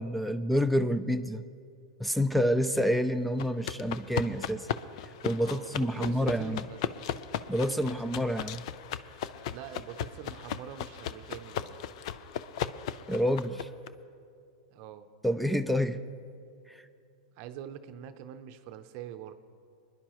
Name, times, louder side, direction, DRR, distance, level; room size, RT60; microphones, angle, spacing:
voice 1, 0.0-1.4 2.0-4.7 5.0-6.6 7.5-8.6 13.1-13.7 15.2-16.0 16.7-16.8, equal, ahead, 12 dB, 0.3 m, -28 dB
sound 1, 3.4-13.9, left 10 dB, 65° left, 0.5 m, -37 dB
voice 2, 5.4-6.8 7.5-8.2 9.5-11.7 14.7-15.1 17.4-19.3, right 10 dB, 50° right, 9 dB, 0.6 m, -44 dB
22.5 x 10.5 x 3.0 m, 2.4 s
hypercardioid pair, 130°, 4 cm